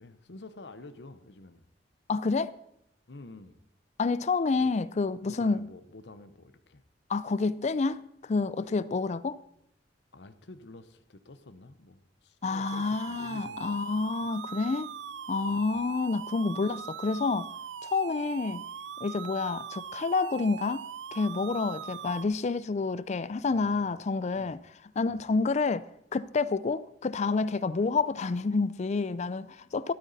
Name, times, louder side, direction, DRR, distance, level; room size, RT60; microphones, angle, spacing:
voice 1, 0.0-1.7 3.1-3.6 4.5-4.7 5.2-6.8 10.1-14.3 15.5-15.8 23.5-23.9 24.3-24.6 25.1-25.2, left 2 dB, 70° left, 0.9 m, -49 dB
voice 2, 2.1-2.5 4.0-5.7 7.1-9.4 12.4-14.9 15.3-17.5 17.8-18.7 19.0-20.8 21.1-24.6 25.0-29.9, left 4 dB, 40° left, 0.4 m, -29 dB
sound 1, 12.6-22.3, right 7 dB, 80° right, 0.5 m, -41 dB
13.0 x 12.5 x 4.1 m
head